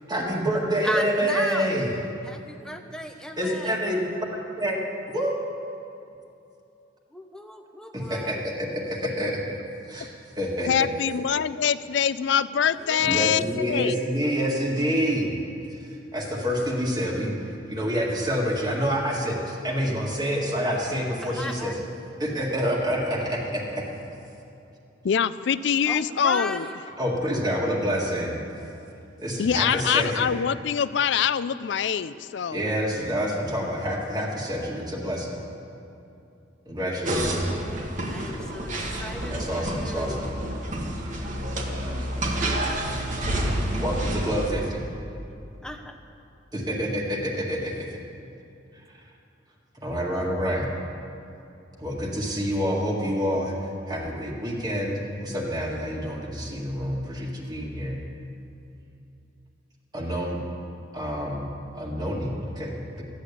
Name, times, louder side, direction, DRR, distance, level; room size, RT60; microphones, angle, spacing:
voice 1, 0.1-1.9 3.4-4.0 4.6-5.3 7.9-9.6 9.9-10.1 10.4-10.9 13.0-15.4 15.7-17.4 17.7-21.8 22.2-23.9 27.0-28.4 29.2-30.3 32.5-35.4 36.7-37.6 39.3-40.3 43.8-44.8 46.5-48.0 48.7-48.8 49.8-50.7 51.8-53.5 53.9-58.0 59.9-60.4 60.9-63.0, equal, 20° right, -1 dB, 1.9 m, -27 dB
voice 2, 0.8-1.7 2.3-3.8 7.1-8.4 12.7-13.3 21.2-21.8 25.9-26.7 38.1-38.7 39.0-40.3 45.6-46.0, left 1 dB, 5° left, 5 dB, 0.8 m, -35 dB
voice 3, 10.7-14.0 25.0-26.7 29.4-32.6, left 8 dB, 70° left, 16 dB, 0.4 m, -24 dB
sound 1, 37.0-44.5, right 1 dB, 45° right, 1.5 m, -29 dB
14.0 x 8.9 x 8.4 m, 2.7 s
head